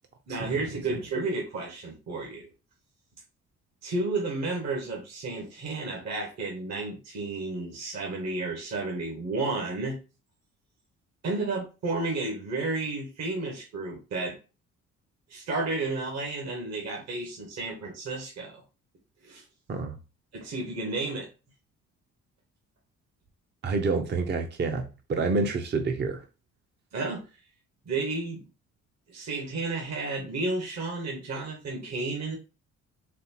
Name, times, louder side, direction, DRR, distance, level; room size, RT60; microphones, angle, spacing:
voice 1, 0.3-2.5 3.8-10.0 11.2-14.4 15.3-18.6 19.2-19.4 20.3-21.3 26.9-27.2 27.9-28.4 29.1-32.4, right 3 dB, 60° right, 1.2 m, -32 dB
voice 2, 23.6-26.3, right 3 dB, 35° right, 0.6 m, -28 dB
4.2 x 3.2 x 2.7 m
cardioid pair, 90°, 30 cm